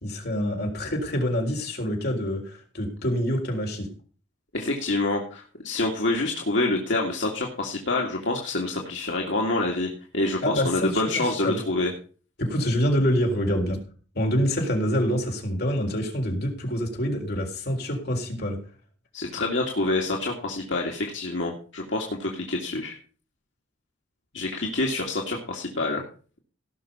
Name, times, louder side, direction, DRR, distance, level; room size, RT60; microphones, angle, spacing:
voice 1, 0.0-3.9 10.4-11.6 12.4-13.8 14.1-18.6, equal, 55° left, 1 dB, 3.9 m, -26 dB
voice 2, 4.5-11.9 19.1-23.0 24.3-26.0, left 2 dB, 75° left, 0 dB, 2.1 m, -27 dB
17.5 x 6.1 x 5.5 m, 0.39 s
head